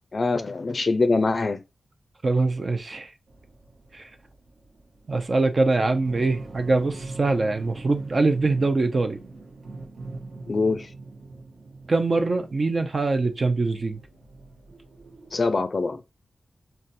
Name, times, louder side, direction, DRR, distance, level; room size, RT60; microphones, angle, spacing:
voice 1, 0.1-1.6 10.5-10.9 15.3-16.0, left 3 dB, 55° left, 0.4 m, -23 dB
voice 2, 2.2-3.1 3.9-4.1 5.1-9.2 11.9-14.0, right 3 dB, 50° right, 0.5 m, -23 dB
sound 1, 3.3-15.5, right 3 dB, 90° right, 0.9 m, -42 dB
3.9 x 2.3 x 2.5 m
cardioid pair, 65°, 0 cm